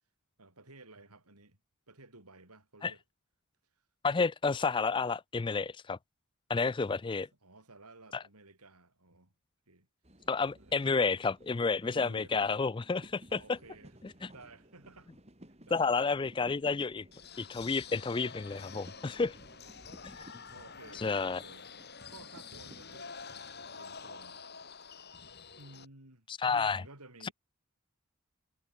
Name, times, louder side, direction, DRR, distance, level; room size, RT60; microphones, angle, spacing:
voice 1, 0.4-1.6 1.9-3.0 7.4-9.3 9.7-9.9 10.5-10.9 11.7-12.3 13.3-15.1 15.7-15.9 19.1-19.7 20.5-21.7 22.1-24.4 25.6-27.3, right 2 dB, 90° right, 7.0 m, -55 dB
voice 2, 4.0-6.0 6.5-7.3 10.3-13.6 15.7-17.0 17.4-19.4 20.0-20.2 21.0-21.4 26.3-26.8 27.2-27.3, left 4 dB, 20° left, 0.3 m, -30 dB
sound 1, 10.0-24.4, equal, 30° right, 4.2 m, -57 dB
sound 2, 17.1-25.8, left 5 dB, 45° left, 7.7 m, -48 dB
head